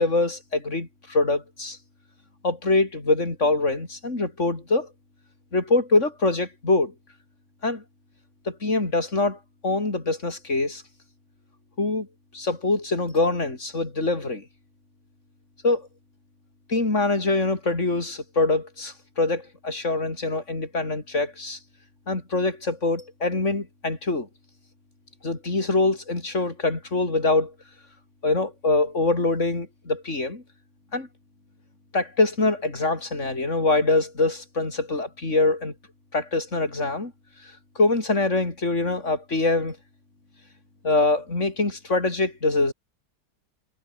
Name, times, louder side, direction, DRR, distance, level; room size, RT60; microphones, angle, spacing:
voice 1, 0.0-1.8 2.4-4.9 5.5-6.9 7.6-7.8 8.5-10.8 11.8-12.1 12.3-14.4 15.6-15.9 16.7-21.6 22.1-24.3 25.2-27.5 28.2-30.4 30.9-31.1 31.9-35.7 36.1-37.1 37.4-39.8 40.8-42.7, left 2 dB, 45° left, 4.7 m, -24 dB
omnidirectional pair, 1.8 m